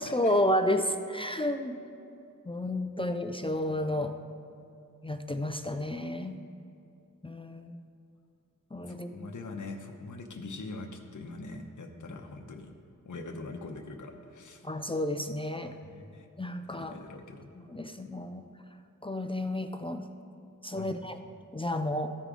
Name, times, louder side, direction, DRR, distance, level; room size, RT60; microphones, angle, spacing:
voice 1, 0.0-1.8 2.5-4.1 5.0-6.4 7.2-7.8 8.7-9.3 14.6-15.7 16.4-17.0 17.6-18.5 19.0-20.0 20.6-21.2 21.5-22.2, left 1 dB, 15° left, 7 dB, 0.3 m, -31 dB
voice 2, 8.9-12.7 13.1-14.7 15.6-16.3 16.7-17.5 20.7-21.0, left 3 dB, 65° left, 3 dB, 0.8 m, -43 dB
14.5 x 4.8 x 3.8 m, 2.6 s
wide cardioid pair, 95°, 33 cm